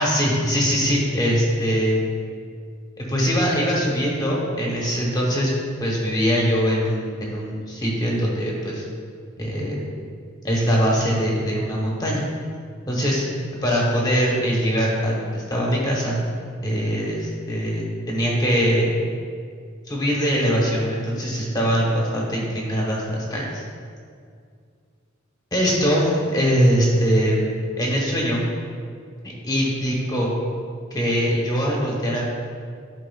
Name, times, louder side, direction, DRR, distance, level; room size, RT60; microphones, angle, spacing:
voice 1, 0.0-2.1 3.0-8.8 9.4-10.0 10.4-12.2 12.9-13.2 13.6-16.2 16.6-18.9 19.9-23.6 25.5-28.4 29.4-30.3 30.9-32.2, equal, 20° left, -3 dB, 1.0 m, -22 dB
11.5 x 4.7 x 2.3 m, 2.2 s
head